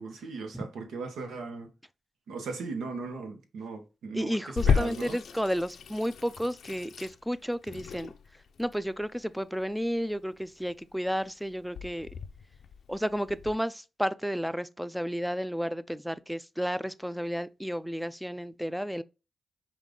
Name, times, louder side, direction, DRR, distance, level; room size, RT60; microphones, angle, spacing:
voice 1, 0.0-1.7 2.3-5.2, right 4 dB, 85° right, 0.9 m, -38 dB
voice 2, 4.1-8.1 8.6-12.1 12.9-19.0, equal, ahead, 0.4 m, -32 dB
Water tap faucet / Sink (filling or washing), 4.6-13.5, left 6 dB, 75° left, 0.5 m, -34 dB
5.2 x 2.4 x 3.7 m
cardioid pair, 70°, 0 cm